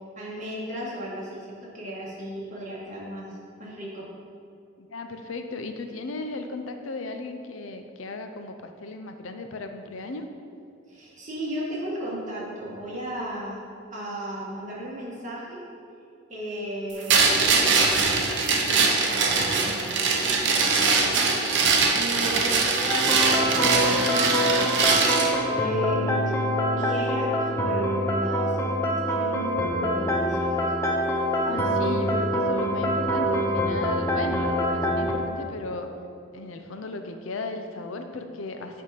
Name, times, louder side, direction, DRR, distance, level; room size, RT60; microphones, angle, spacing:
voice 1, 0.1-4.1 10.9-13.6 13.9-15.7 16.3-21.4 21.9-26.4 26.8-30.5, right 1 dB, 40° right, -6 dB, 1.8 m, -36 dB
voice 2, 4.8-10.3 31.4-35.9 36.3-38.8, left 3 dB, 85° left, 6 dB, 0.6 m, -35 dB
sound 1, 17.1-25.3, right 4 dB, 60° right, 0.8 m, -22 dB
sound 2, 22.9-35.1, equal, 15° left, 0.7 m, -25 dB
8.9 x 3.6 x 5.1 m, 2.4 s
head